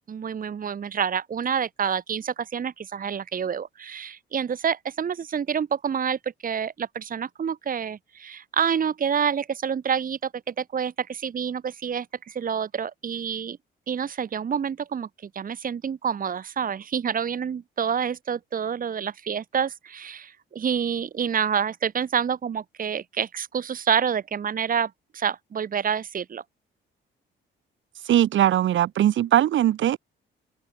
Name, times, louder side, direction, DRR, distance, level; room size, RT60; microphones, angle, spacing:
voice 1, 0.1-13.6 13.9-15.1 15.3-26.4, right 7 dB, 45° right, 1.6 m, -28 dB
voice 2, 28.1-30.0, right 12 dB, 75° right, 3.2 m, -20 dB
open air
cardioid pair, 90°, 20 cm